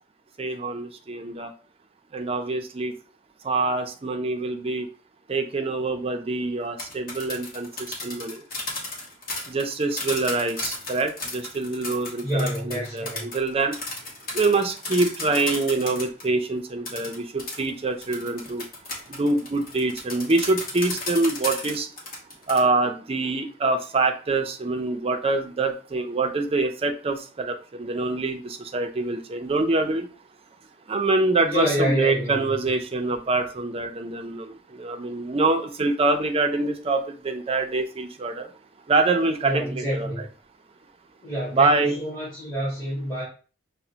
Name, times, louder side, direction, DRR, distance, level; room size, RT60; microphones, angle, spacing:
voice 1, 0.4-1.5 2.1-2.9 3.4-4.9 5.3-8.4 9.5-13.8 14.3-18.7 19.1-21.9 22.5-30.1 30.9-38.5 38.9-40.1 41.5-42.0, right 3 dB, 30° right, 6 dB, 0.4 m, -25 dB
sound 1, 6.6-16.3 16.8-22.6, left 2 dB, 50° left, 1.1 m, -34 dB
voice 2, 12.2-13.3 31.4-32.5 39.4-40.2 41.2-43.2, equal, 20° left, -9 dB, 1.6 m, -28 dB
5.8 x 2.1 x 2.7 m, 0.37 s
head